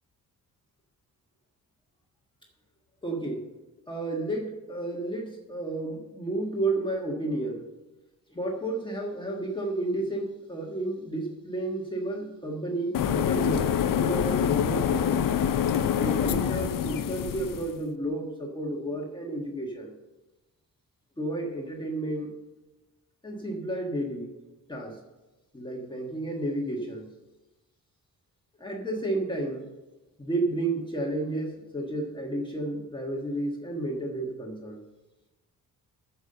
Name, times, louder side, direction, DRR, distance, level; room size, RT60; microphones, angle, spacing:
voice 1, 3.0-3.4 3.9-7.7 8.3-15.3 15.9-19.9 21.2-22.3 23.2-24.3 24.7-25.0 25.5-27.1 28.6-29.7 30.2-34.8, right 2 dB, 15° left, -1 dB, 1.5 m, -32 dB
sound 1, 12.9-17.7, left 8 dB, 60° left, 0.6 m, -26 dB
9.3 x 7.2 x 6.6 m, 1.1 s
wide cardioid pair, 140°, 36 cm